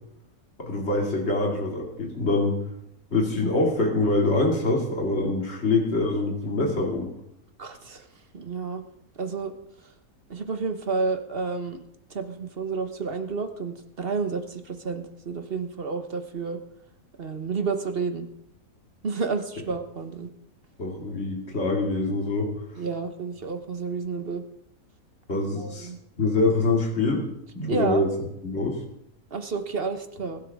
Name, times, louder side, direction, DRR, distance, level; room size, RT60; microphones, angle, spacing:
voice 1, 0.6-2.6 3.1-7.1 20.8-22.5 25.3-25.9 26.2-27.3 27.5-28.1 28.4-28.8, left 2 dB, 50° left, 0 dB, 2.8 m, -24 dB
voice 2, 7.6-8.1 8.3-8.8 9.2-9.5 10.3-11.8 12.1-16.6 17.2-18.3 19.0-20.3 22.8-24.4 25.6-26.0 27.7-28.0 29.3-30.4, right 4 dB, 45° right, 7 dB, 1.2 m, -30 dB
20.5 x 12.0 x 3.6 m, 0.77 s
omnidirectional pair, 1.5 m